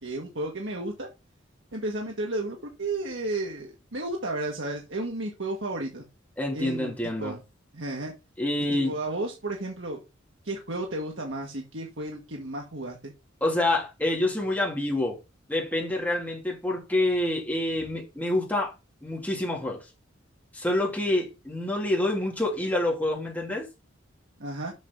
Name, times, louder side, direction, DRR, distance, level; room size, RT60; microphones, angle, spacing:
voice 1, 0.0-1.1 1.7-6.0 6.5-6.9 7.2-7.4 7.7-8.1 8.8-10.0 10.4-13.1 24.4-24.7, right 2 dB, 65° right, 1.6 m, -33 dB
voice 2, 6.4-7.4 8.4-9.0 13.4-15.2 15.5-18.7 19.0-19.9 20.5-23.7, left 1 dB, 10° left, 2.4 m, -27 dB
7.2 x 6.0 x 3.7 m
head